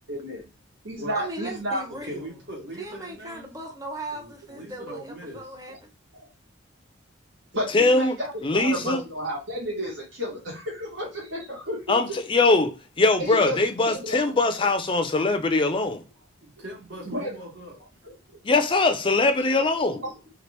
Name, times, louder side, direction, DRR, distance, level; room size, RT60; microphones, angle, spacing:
voice 1, 0.1-0.4 0.8-1.8 5.3-5.4 7.5-12.2 13.2-14.3 17.0-17.3 18.0-18.1 20.0-20.1, equal, 80° right, 1.3 m, -32 dB
voice 2, 1.1-2.3 2.8-5.9, right 2 dB, 20° right, 0.7 m, -37 dB
voice 3, 1.9-3.5 4.1-5.4 16.4-17.8, equal, 60° right, 1.2 m, -40 dB
voice 4, 7.7-8.1 8.4-9.0 11.9-16.0 18.4-20.0, left 3 dB, 25° left, 0.4 m, -22 dB
2.9 x 2.5 x 3.2 m
head